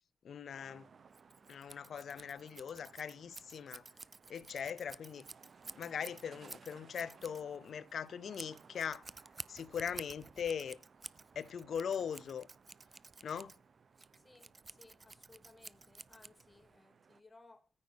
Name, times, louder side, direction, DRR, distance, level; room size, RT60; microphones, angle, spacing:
voice 1, 0.2-0.9 1.5-3.8 4.3-5.2 5.7-9.1 9.5-10.8 11.3-12.5 13.2-13.6, left 7 dB, 55° left, 0.6 m, -40 dB
sound 1, 0.5-17.2, right 5 dB, 40° right, 0.8 m, -62 dB
Scissors, 1.1-16.7, right 3 dB, 25° right, 0.4 m, -53 dB
voice 2, 14.2-17.7, left 2 dB, 15° left, 1.4 m, -62 dB
14.0 x 5.1 x 4.7 m
cardioid pair, 90°, 0 cm